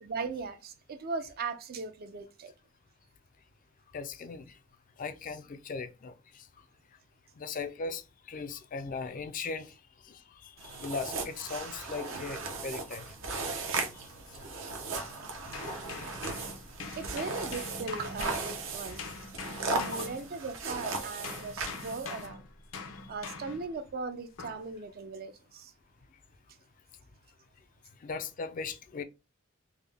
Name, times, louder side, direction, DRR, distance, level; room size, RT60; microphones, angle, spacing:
voice 1, 0.0-2.5 16.9-19.0 19.6-22.4 23.1-25.7, right 4 dB, 50° right, 0.4 m, -38 dB
voice 2, 3.9-4.6 5.0-6.5 7.4-13.4 13.7-15.2 15.7-16.2 19.9-20.1 23.0-23.1 28.0-29.0, left 4 dB, 40° left, 0.4 m, -40 dB
sound 1, 10.6-22.3, right 3 dB, 75° right, 0.8 m, -37 dB
sound 2, 15.5-20.7 21.2-23.7 24.4-24.7, left 4 dB, 85° left, 0.6 m, -43 dB
3.5 x 2.1 x 3.3 m
head